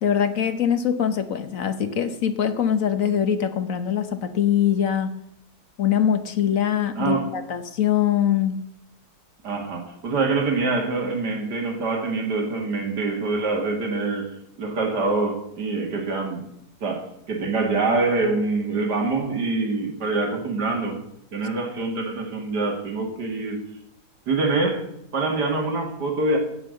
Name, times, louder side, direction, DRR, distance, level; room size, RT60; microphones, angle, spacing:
voice 1, 0.0-5.1 5.8-8.6, left 9 dB, 60° left, 10 dB, 1.4 m, -23 dB
voice 2, 7.0-7.4 9.4-16.5 16.8-21.0 21.3-23.6 24.3-24.8 25.1-26.4, right 3 dB, 90° right, 2 dB, 2.6 m, -25 dB
15.5 x 5.5 x 7.8 m, 0.77 s
omnidirectional pair, 1.7 m